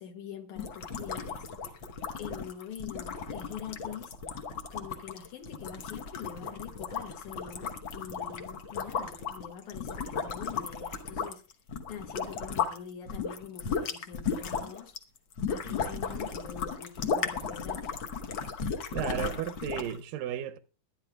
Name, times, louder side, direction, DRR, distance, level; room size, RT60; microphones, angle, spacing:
voice 1, 0.0-1.5 2.1-4.2 4.7-11.4 11.9-14.9 15.5-18.0, left 8 dB, 70° left, 2.3 m, -44 dB
sound 1, 0.6-12.8 13.1-20.0, left 6 dB, 85° left, 1.0 m, -35 dB
voice 2, 18.9-20.6, right 11 dB, 80° right, 2.2 m, -34 dB
22.5 x 9.6 x 2.3 m
omnidirectional pair, 3.9 m